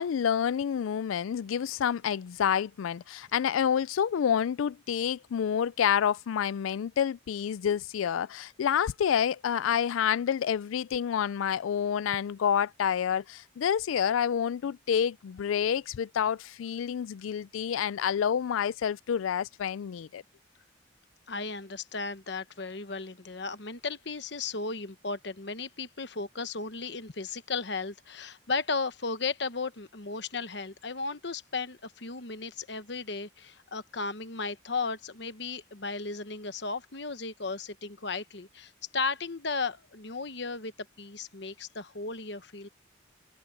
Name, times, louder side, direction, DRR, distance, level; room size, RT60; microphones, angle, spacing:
voice 1, 0.0-20.2, left 8 dB, 90° left, 0.4 m, -28 dB
voice 2, 21.3-40.7 41.0-42.7, left 4 dB, 60° left, 1.1 m, -35 dB
head